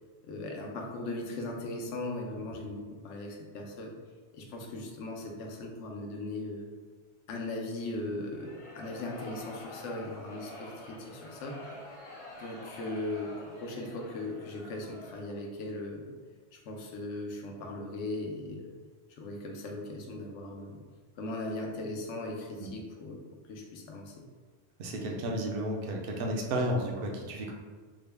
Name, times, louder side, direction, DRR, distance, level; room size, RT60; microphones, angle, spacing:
voice 1, 0.2-3.9 4.3-6.7 7.3-11.6 12.4-16.1 16.5-18.7 19.1-20.8 21.2-23.2 23.5-24.1, left 2 dB, 90° left, 1 dB, 0.9 m, -38 dB
sound 1, 8.2-15.5, left 1 dB, 70° left, 1.1 m, -47 dB
voice 2, 24.8-27.5, right 1 dB, 60° right, 1 dB, 0.7 m, -32 dB
3.7 x 2.1 x 3.3 m, 1.4 s
omnidirectional pair, 1.2 m